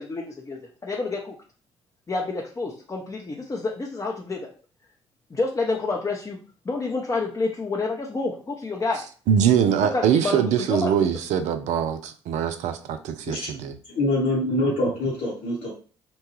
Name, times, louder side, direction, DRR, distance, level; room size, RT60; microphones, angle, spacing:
voice 1, 0.0-1.3 2.1-4.4 5.3-6.4 6.7-9.0 9.7-11.2, left 3 dB, 25° left, -1 dB, 0.6 m, -29 dB
voice 2, 9.3-13.7, right 8 dB, 60° right, 9 dB, 0.5 m, -23 dB
voice 3, 13.3-15.7, left 1 dB, 55° left, -5 dB, 1.0 m, -25 dB
2.9 x 2.2 x 3.0 m, 0.38 s
hypercardioid pair, 50°, 14 cm